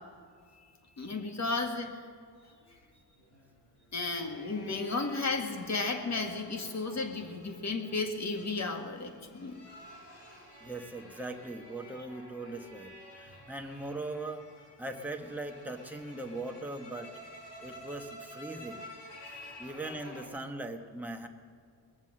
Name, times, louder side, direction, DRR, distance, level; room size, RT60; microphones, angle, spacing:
voice 1, 1.0-1.9 3.9-9.5 19.2-19.9, left 3 dB, 40° left, 5 dB, 1.8 m, -34 dB
sound 1, 2.5-20.3, equal, 80° left, 4.5 m, -51 dB
voice 2, 10.6-14.5 14.8-17.1 17.6-18.8 19.6-21.3, right 2 dB, 5° right, 2 dB, 1.1 m, -40 dB
21.0 x 7.3 x 7.5 m, 2.2 s
cardioid pair, 115°, 42 cm